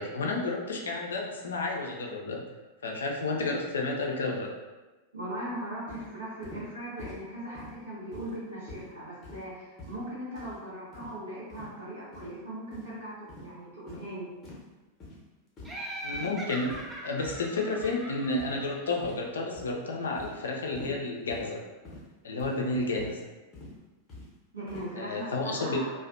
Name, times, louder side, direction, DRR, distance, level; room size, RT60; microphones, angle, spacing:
voice 1, 0.0-2.5 2.8-4.5 16.0-16.8 17.0-21.6 22.2-23.2 25.0-25.8, left 2 dB, 65° left, 0 dB, 0.3 m, -31 dB
voice 2, 5.1-14.3 24.5-25.9, right 1 dB, 80° right, -11 dB, 0.7 m, -39 dB
sound 1, 5.9-6.1 6.4-6.7 7.0-7.2 7.5-7.8 8.1-8.4 8.7-8.9 9.2-9.5 9.8-10.0 10.4-10.6 10.9-11.1 11.5-11.7 12.1-12.3 12.7-12.9 13.3-13.5 13.9-14.1 14.4-14.6 15.0-15.2 15.6-15.9 16.1-16.3 16.7-17.0 17.2-17.5 17.8-18.0 18.4-18.7 19.0-19.3 19.5-19.8 20.2-20.4 20.7-21.0 21.3-21.5 21.8-22.1 22.4-22.6 23.0-23.1 23.5-23.7 24.1-24.3 24.7-24.9, left 2 dB, 25° left, 0.7 m, -45 dB
Laughter, 15.6-19.3, right 1 dB, 15° right, 0.4 m, -41 dB
2.4 x 2.1 x 2.4 m, 1.2 s
figure-of-eight pair, 90°, 0 cm